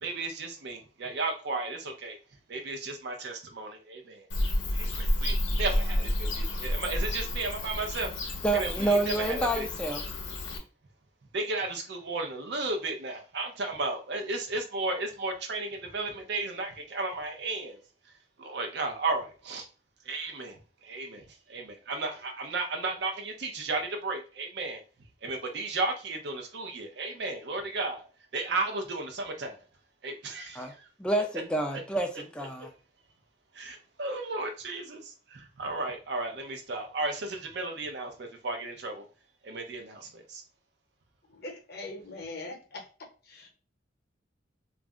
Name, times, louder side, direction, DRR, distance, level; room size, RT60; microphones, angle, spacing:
voice 1, 0.0-2.2 2.5-4.3 4.7-8.1 8.5-9.7 11.3-17.8 18.4-19.7 20.0-24.8 25.2-28.1 28.3-29.6 30.0-30.9 32.6-32.7 33.5-39.0 39.4-40.4, right 3 dB, 60° right, 0.6 m, -34 dB
Bird / Cricket, 4.3-10.6, left 1 dB, 85° left, 0.7 m, -30 dB
voice 2, 8.4-10.0 30.6-30.7 31.0-32.7, right 2 dB, 5° left, 0.4 m, -28 dB
voice 3, 41.3-42.9 43.3-43.5, left 2 dB, 55° left, 0.8 m, -41 dB
2.4 x 2.0 x 3.6 m
head